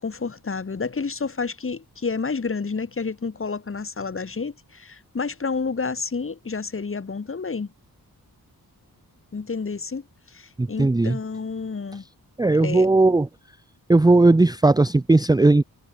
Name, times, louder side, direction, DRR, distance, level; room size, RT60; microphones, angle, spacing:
voice 1, 0.0-7.7 9.3-12.0 12.6-12.9, left 4 dB, 35° left, 7.2 m, -30 dB
voice 2, 10.6-11.2 12.4-13.3 13.9-15.6, right 2 dB, 10° right, 0.7 m, -17 dB
wide cardioid pair, 170°, 36 cm